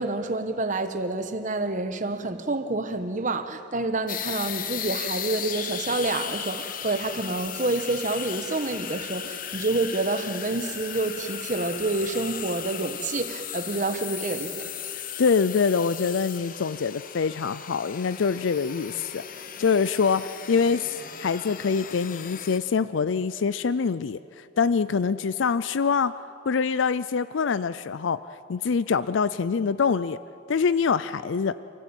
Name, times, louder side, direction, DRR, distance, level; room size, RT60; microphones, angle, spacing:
voice 1, 0.0-14.7, right 2 dB, 40° right, 1.2 m, -28 dB
sound 1, 4.1-22.6, left 9 dB, 45° left, 0.9 m, -36 dB
voice 2, 15.2-19.2 19.6-26.1 26.5-28.2 28.5-30.2 30.5-31.6, left 5 dB, 75° left, 0.5 m, -25 dB
30.0 x 15.5 x 8.9 m
head